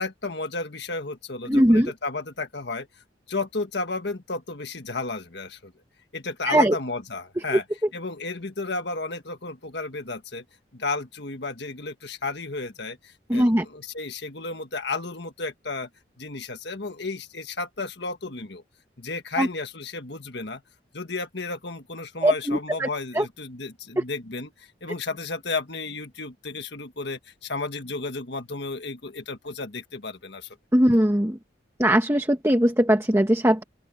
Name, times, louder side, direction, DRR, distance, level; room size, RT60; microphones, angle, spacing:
voice 1, 0.0-2.9 3.3-5.7 6.1-7.6 7.9-10.4 10.7-15.9 16.2-18.6 19.0-20.6 20.9-30.6, left 3 dB, 60° left, 1.7 m, -33 dB
voice 2, 1.5-1.9 6.5-6.8 7.5-7.6 13.3-13.6 19.4-19.5 22.2-22.9 23.1-23.2 30.7-31.4 31.8-33.6, equal, 15° right, 1.2 m, -20 dB
open air
head